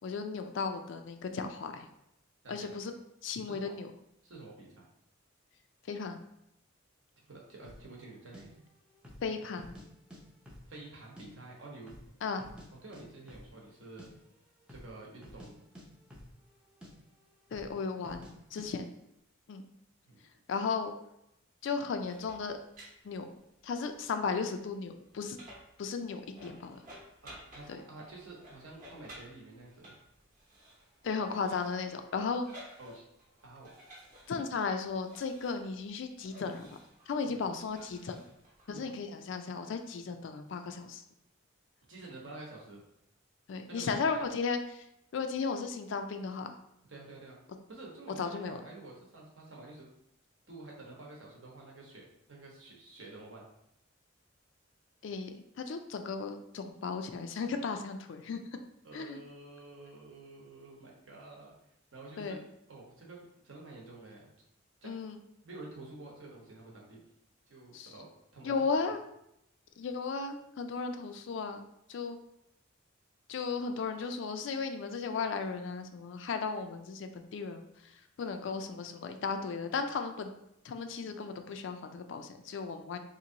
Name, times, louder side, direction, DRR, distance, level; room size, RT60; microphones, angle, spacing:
voice 1, 0.0-1.9 2.5-2.9 3.2-3.9 5.8-6.2 9.2-9.8 12.2-12.4 17.5-18.9 19.5-19.6 20.5-20.9 21.6-22.6 23.0-23.3 23.6-25.4 25.8-26.8 27.7-27.8 31.0-32.5 34.3-36.8 37.1-38.2 38.7-41.0 43.5-44.9 45.1-46.5 48.2-48.6 55.0-58.4 58.9-59.2 62.2-62.4 64.8-65.2 67.7-67.9 68.4-69.0 69.8-72.2 73.3-80.3 80.6-83.0, left 5 dB, 60° left, 7 dB, 0.3 m, -35 dB
voice 2, 2.4-2.7 3.5-3.7 4.2-4.9 7.2-8.5 10.7-11.9 12.8-14.1 14.7-15.6 20.1-20.2 27.2-29.9 32.8-33.0 33.4-33.7 37.2-37.4 38.7-38.9 41.9-42.8 43.7-44.2 46.9-47.4 47.7-49.9 50.5-52.0 52.3-53.5 58.8-61.5 61.9-62.4 62.7-63.2 63.4-64.3 64.8-64.9 65.4-67.0 67.5-68.0 68.3-68.5, right 2 dB, 65° right, -2 dB, 0.9 m, -49 dB
sound 1, 7.6-7.9 8.3-8.4 9.0-9.3 9.6-10.2 10.5-11.3 11.5-11.6 11.9-12.7 12.9-13.0 13.3-13.5 13.8-14.1 14.6-14.9 15.2-15.5 15.7-16.5 16.8-16.9 17.5-17.7 18.0-18.3 18.6-18.7, equal, 5° right, 0.5 m, -50 dB
sound 2, 22.0-38.9, equal, 40° right, 0.8 m, -55 dB
2.9 x 2.6 x 3.8 m, 0.80 s
head